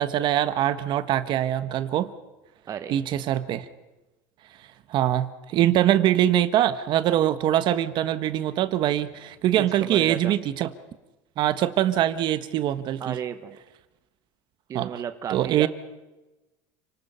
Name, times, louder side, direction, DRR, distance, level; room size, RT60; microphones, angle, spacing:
voice 1, 0.0-2.1 2.9-3.7 4.9-10.7 11.4-13.2 14.7-15.0 15.3-15.7, right 12 dB, 50° right, 12 dB, 1.4 m, -23 dB
voice 2, 2.7-3.0 9.5-10.3 13.0-13.6 14.7-15.7, right 8 dB, 35° right, 8 dB, 1.2 m, -33 dB
30.0 x 19.5 x 5.7 m, 1.1 s
supercardioid pair, 130°, 10 cm